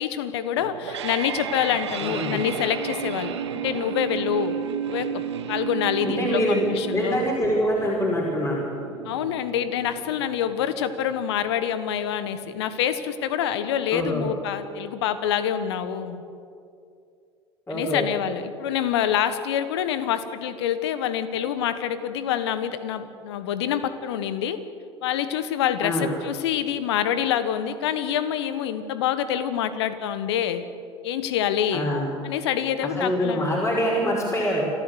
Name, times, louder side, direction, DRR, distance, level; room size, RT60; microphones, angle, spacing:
voice 1, 0.0-4.6 4.9-5.2 5.5-7.2 9.0-16.2 17.7-24.6 25.0-30.6 31.0-31.9 32.2-33.5, left 9 dB, 70° left, 12 dB, 1.4 m, -26 dB
sound 1, 0.6-11.6, right 9 dB, 75° right, 1.5 m, -33 dB
voice 2, 2.0-2.4 6.0-8.7 13.9-14.3 17.7-18.1 25.8-26.1 31.7-32.1 32.8-34.7, equal, 20° left, -3 dB, 5.4 m, -25 dB
28.5 x 13.5 x 8.3 m, 2.5 s
figure-of-eight pair, 70°, 14 cm